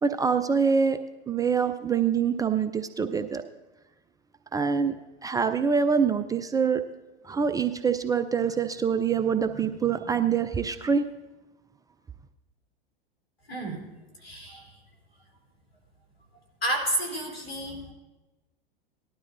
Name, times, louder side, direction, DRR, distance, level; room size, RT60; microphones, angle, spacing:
voice 1, 0.0-1.0 1.3-3.4 4.5-5.0 5.2-6.8 7.2-11.0, right 6 dB, 10° right, 10 dB, 0.4 m, -25 dB
voice 2, 13.5-13.9 14.2-14.8 16.6-17.9, right 1 dB, 85° left, 1 dB, 3.2 m, -31 dB
18.5 x 12.0 x 2.6 m, 1.1 s
figure-of-eight pair, 90°, 29 cm